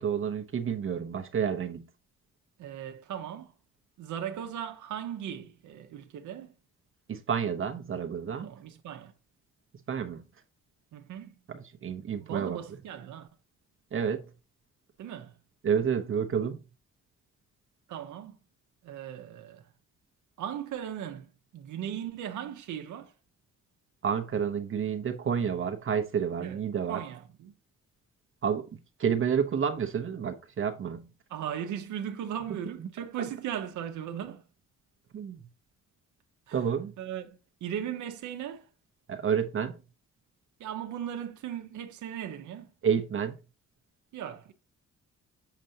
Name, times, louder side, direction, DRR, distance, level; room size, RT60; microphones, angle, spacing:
voice 1, 0.0-1.9 7.1-8.5 9.9-10.2 11.5-12.6 13.9-14.2 15.6-16.6 24.0-27.0 28.4-28.6 29.0-31.1 35.1-35.4 36.5-36.9 39.1-39.8 42.8-43.4, right 7 dB, 45° right, 0.8 m, -29 dB
voice 2, 2.6-3.5 4.0-6.5 8.4-9.1 10.9-11.3 12.2-13.3 15.0-15.3 17.9-18.4 18.8-19.6 20.4-23.1 26.4-26.6 26.9-27.5 31.3-34.4 36.5-36.6 37.0-38.6 40.6-42.7 44.1-44.5, right 9 dB, 75° right, 0.9 m, -37 dB
6.7 x 5.1 x 2.8 m
cardioid pair, 90°, 30 cm